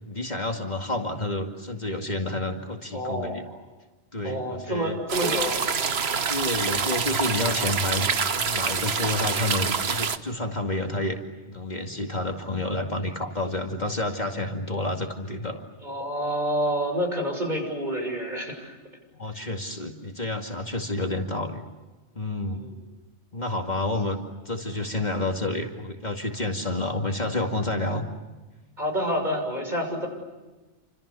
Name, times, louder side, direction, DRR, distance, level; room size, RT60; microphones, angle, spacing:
voice 1, 0.1-3.4 4.1-5.0 6.3-11.2 11.5-15.6 19.1-21.6 22.1-22.6 23.3-24.2 24.5-28.0, left 2 dB, 40° left, 2 dB, 2.5 m, -29 dB
voice 2, 2.9-3.6 4.2-5.6 15.8-18.8 19.3-19.4 22.6-22.8 28.8-30.1, equal, 40° right, 3 dB, 6.9 m, -28 dB
sound 1, 5.1-10.2, right 5 dB, 65° right, 1.4 m, -26 dB
29.0 x 27.0 x 7.0 m, 1.2 s
omnidirectional pair, 1.1 m